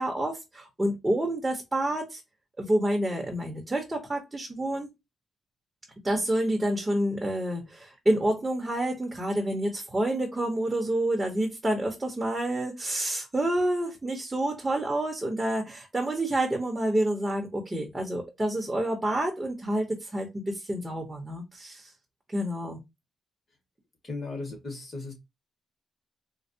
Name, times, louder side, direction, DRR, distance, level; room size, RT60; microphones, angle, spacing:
voice 1, 0.0-2.2 2.6-4.9 6.0-21.9 22.3-22.8, right 1 dB, 15° right, 0.8 m, -28 dB
voice 2, 24.0-25.1, left 3 dB, 35° left, 1.6 m, -36 dB
4.3 x 2.0 x 2.6 m
cardioid pair, 115°, 0 cm